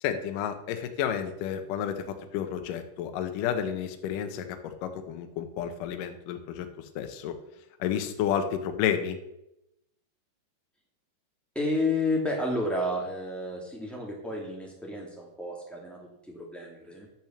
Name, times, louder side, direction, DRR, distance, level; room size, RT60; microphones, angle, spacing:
voice 1, 0.0-7.4 7.8-9.2, left 9 dB, 85° left, 6 dB, 1.9 m, -31 dB
voice 2, 11.5-17.1, left 2 dB, ahead, -3 dB, 0.8 m, -31 dB
11.0 x 5.8 x 7.4 m, 0.83 s
omnidirectional pair, 5.3 m